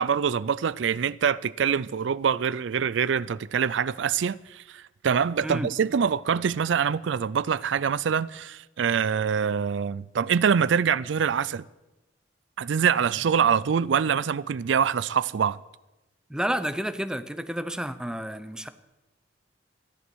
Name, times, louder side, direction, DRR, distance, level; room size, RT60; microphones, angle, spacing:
voice 1, 0.0-11.6 12.6-15.6, right 7 dB, 85° right, 0.4 m, -25 dB
voice 2, 5.4-5.7 16.3-18.7, equal, 5° right, 0.7 m, -30 dB
13.5 x 11.5 x 6.3 m
head